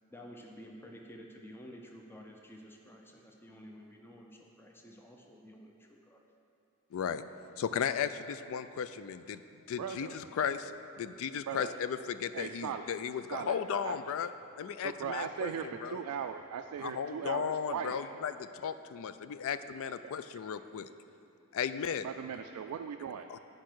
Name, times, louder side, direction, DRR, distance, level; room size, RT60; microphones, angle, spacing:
voice 1, 0.1-6.2, equal, 10° left, 1 dB, 0.5 m, -51 dB
voice 2, 6.9-7.2 7.6-9.4 9.7-14.3 14.6-16.0 16.8-20.9 21.5-22.1 23.3-23.4, left 7 dB, 65° left, 12 dB, 0.3 m, -35 dB
voice 3, 9.8-10.2 11.5-11.8 12.3-12.9 13.3-14.0 14.8-18.0 20.0-20.1 22.0-23.3, right 7 dB, 80° right, 6 dB, 0.3 m, -38 dB
8.4 x 5.3 x 6.0 m, 2.6 s
head